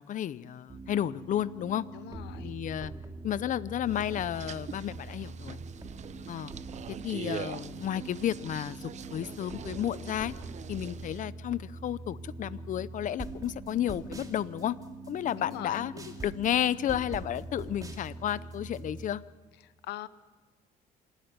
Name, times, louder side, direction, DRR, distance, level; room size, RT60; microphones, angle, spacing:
voice 1, 0.0-1.9 2.4-2.9 3.2-5.6 6.3-6.5 6.9-10.3 10.7-14.8 15.1-15.9 16.2-19.2, left 11 dB, 50° left, 17 dB, 0.7 m, -32 dB
sound 1, 0.7-19.1, right 2 dB, 20° right, 2.4 m, -43 dB
voice 2, 1.9-2.6 15.4-16.1 19.6-20.1, left 15 dB, 85° left, 15 dB, 1.0 m, -42 dB
sound 2, 3.8-11.2, right 8 dB, 45° right, 0.8 m, -43 dB
26.5 x 12.5 x 9.7 m, 1.4 s
cardioid pair, 110°, 17 cm